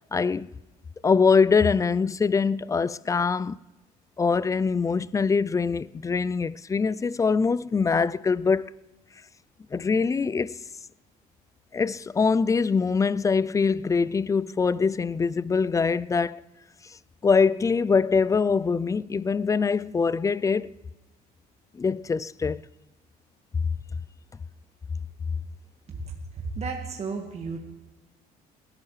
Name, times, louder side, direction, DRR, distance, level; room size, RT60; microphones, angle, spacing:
voice 1, 0.1-0.5 1.0-3.6 4.2-8.8 9.7-10.6 11.7-16.4 16.8-17.0 17.2-20.7 21.7-22.7, left 5 dB, 20° left, 0.3 m, -23 dB
voice 2, 25.9-27.6, right 4 dB, 40° right, 1.7 m, -33 dB
20.0 x 12.5 x 3.2 m
cardioid pair, 110°, 17 cm